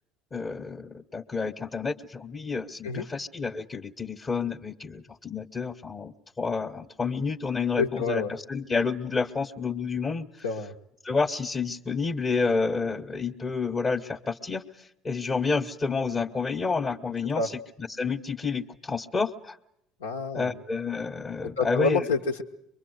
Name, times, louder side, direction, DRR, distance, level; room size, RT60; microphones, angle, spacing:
voice 1, 0.3-10.3 11.0-17.6 17.9-19.6 20.3-22.0, left 4 dB, 30° left, 1 dB, 1.2 m, -29 dB
voice 2, 7.8-8.3 10.4-10.8 17.3-17.5 20.0-20.6 21.4-22.4, left 4 dB, 85° left, 4 dB, 1.4 m, -28 dB
24.0 x 22.5 x 8.0 m, 0.78 s
hypercardioid pair, 65°, 0 cm